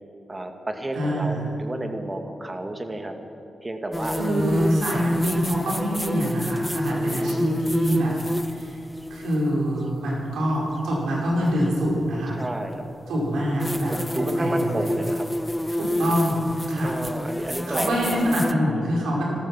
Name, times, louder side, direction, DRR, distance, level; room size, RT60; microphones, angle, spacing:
voice 1, 0.3-3.1 3.6-4.2 4.9-5.1 7.0-7.6 12.4-12.8 13.9-15.3 16.8-18.2, right 1 dB, 25° right, 5 dB, 2.1 m, -31 dB
voice 2, 0.9-1.4 4.1-8.1 8.5-8.8 9.1-12.4 13.1-14.9 15.7-17.0 17.7-19.2, equal, 90° right, -4 dB, 4.9 m, -25 dB
sound 1, 3.9-9.4 11.5-11.6 13.6-18.5, left 1 dB, 10° left, 0.4 m, -28 dB
17.5 x 13.5 x 6.0 m, 2.8 s
cardioid pair, 50°, 0 cm